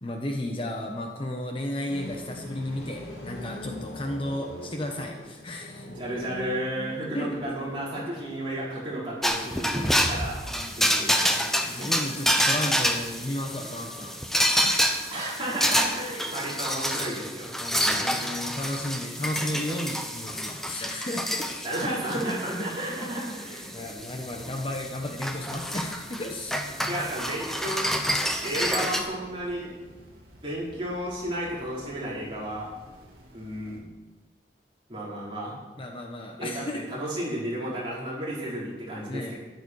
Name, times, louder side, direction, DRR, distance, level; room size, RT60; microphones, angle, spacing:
voice 1, 0.0-5.9 7.1-7.4 10.5-10.9 11.2-15.1 16.1-16.2 17.6-21.7 23.7-26.6 35.8-36.9 39.1-39.3, left 1 dB, 30° left, 2 dB, 1.1 m, -34 dB
sound 1, 1.9-19.0, equal, 80° left, 3.2 m, -46 dB
voice 2, 5.8-10.4 10.8-11.9 15.1-17.5 17.8-18.0 21.6-23.7 26.9-28.0 28.4-29.7 30.4-32.7 33.3-33.8 34.9-35.6 36.4-39.4, right 1 dB, 30° right, -7 dB, 5.1 m, -33 dB
sound 2, 9.2-29.0, equal, ahead, 0.9 m, -28 dB
sound 3, 23.6-33.8, equal, 55° right, 3.0 m, -52 dB
13.5 x 11.0 x 4.8 m, 1.2 s
head